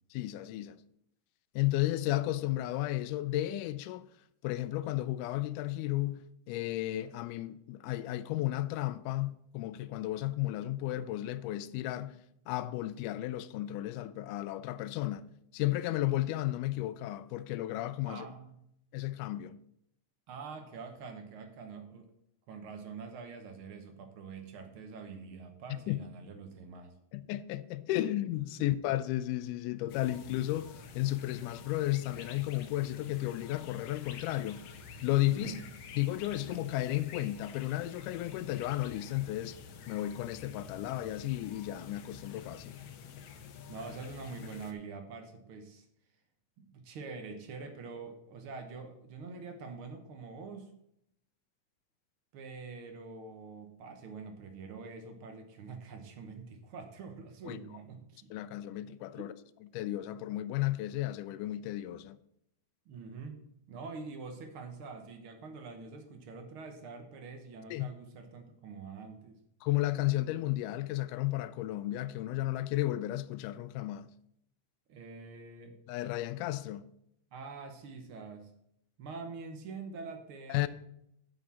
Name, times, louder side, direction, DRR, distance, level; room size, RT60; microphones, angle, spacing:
voice 1, 0.1-0.8 1.6-4.1 4.4-12.2 12.5-15.2 15.5-18.3 18.9-19.6 25.9-26.0 27.1-34.6 35.0-35.5 36.0-39.6 39.9-42.8 57.4-57.6 58.3-59.3 59.7-62.2 67.7-67.9 69.6-74.1 75.9-76.9 80.5-80.7, left 15 dB, 85° left, 2.1 m, -33 dB
voice 2, 18.1-18.6 20.3-22.1 22.5-26.9 28.5-28.6 35.2-35.6 43.7-45.9 46.6-50.7 52.3-58.3 59.1-59.2 62.9-63.4 63.7-69.4 74.9-75.7 77.3-78.5 79.0-80.7, right 4 dB, 65° right, 1.4 m, -45 dB
sound 1, 29.9-44.7, left 6 dB, 65° left, 1.6 m, -49 dB
7.8 x 6.1 x 7.2 m
omnidirectional pair, 3.6 m